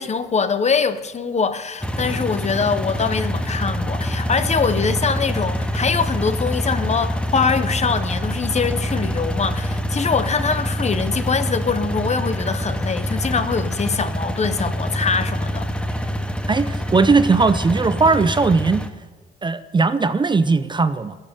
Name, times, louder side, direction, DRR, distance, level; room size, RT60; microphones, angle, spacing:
voice 1, 0.0-15.7, left 5 dB, 35° left, 0.9 m, -23 dB
sound 1, 1.8-18.9, equal, 5° left, 1.0 m, -25 dB
voice 2, 16.5-18.9 19.4-21.1, right 4 dB, 25° right, 0.6 m, -18 dB
17.5 x 7.4 x 6.8 m
cardioid pair, 90°, 20 cm